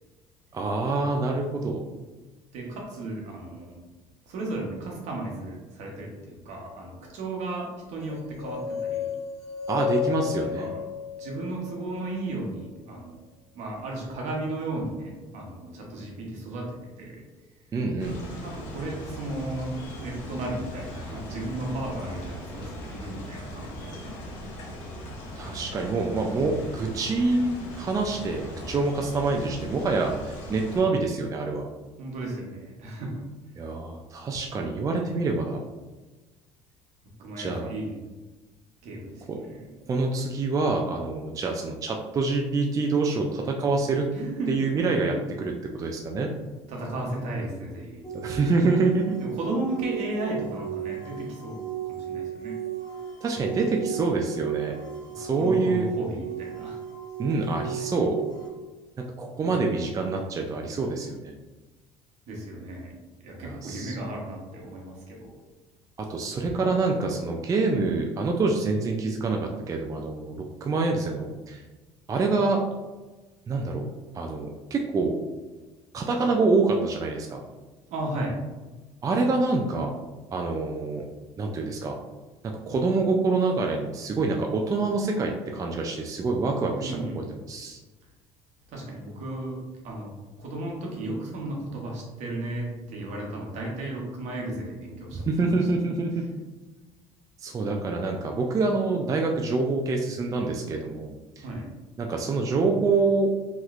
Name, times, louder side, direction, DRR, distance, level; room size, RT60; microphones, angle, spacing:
voice 1, 0.5-1.8 9.7-10.7 17.7-18.4 25.4-31.7 33.6-35.6 37.4-37.7 39.3-39.4 39.9-44.1 44.5-46.3 48.1-49.1 53.2-54.7 55.2-55.9 57.2-58.2 59.2-61.3 63.4-63.9 66.0-71.6 72.1-72.6 73.5-73.8 74.1-75.1 75.9-77.4 79.0-79.9 80.3-81.0 81.4-82.0 82.7-87.8 95.1-96.2 97.4-101.4 102.0-103.3, right 3 dB, 25° right, 1 dB, 0.3 m, -26 dB
voice 2, 2.5-3.8 4.3-9.2 10.4-10.8 11.2-13.2 13.5-17.2 18.4-24.8 32.0-33.2 37.2-38.0 38.8-39.7 44.1-45.1 46.7-48.0 49.2-52.6 55.2-56.8 59.4-59.7 62.3-62.9 63.2-65.3 77.9-78.4 86.8-87.3 88.7-90.1 90.4-95.5 101.4-101.7, right 2 dB, 65° right, -1 dB, 0.9 m, -35 dB
sound 1, 8.1-12.2, left 9 dB, 50° left, 0.4 m, -32 dB
sound 2, 18.0-30.8, equal, 75° left, 0.9 m, -39 dB
sound 3, 48.0-58.5, right 10 dB, 25° left, 1.3 m, -35 dB
3.0 x 2.8 x 2.4 m, 1.2 s
supercardioid pair, 90°, 13 cm